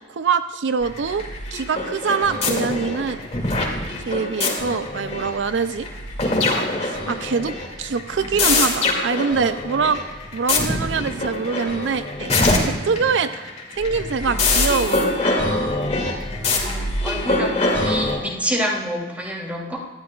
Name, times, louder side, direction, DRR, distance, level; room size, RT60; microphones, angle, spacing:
voice 1, 0.1-1.2 1.5-3.3 4.0-5.9 6.8-10.0 10.3-12.4 12.7-15.3, right 5 dB, 75° right, 11 dB, 0.4 m, -24 dB
sound 1, 0.8-18.2, left 2 dB, 35° left, 2.4 m, -24 dB
voice 2, 16.1-19.8, equal, 10° right, -3 dB, 2.9 m, -28 dB
19.5 x 13.5 x 2.4 m, 1.4 s
head